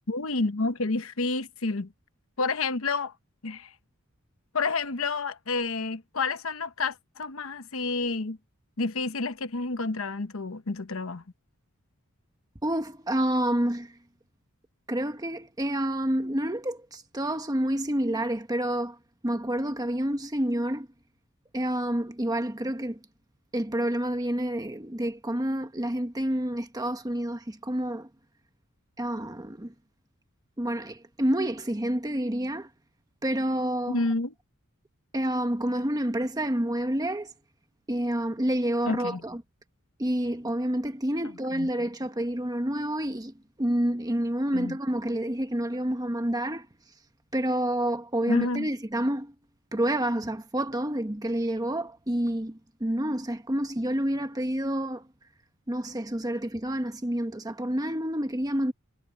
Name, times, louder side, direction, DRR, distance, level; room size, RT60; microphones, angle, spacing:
voice 1, 0.1-1.9 2.4-3.1 3.4-3.7 4.5-8.4 8.8-11.2 33.9-34.3 38.9-39.2 41.5-41.7 44.5-44.8 48.3-48.7, left 3 dB, 65° left, 1.0 m, -29 dB
voice 2, 12.6-14.0 14.9-19.0 19.2-20.9 21.5-23.0 23.5-28.1 29.0-29.7 30.6-32.7 33.2-34.0 35.1-37.3 37.9-39.4 40.0-46.7 47.3-49.3 49.7-55.1 55.7-58.7, right 1 dB, 15° right, 1.3 m, -28 dB
head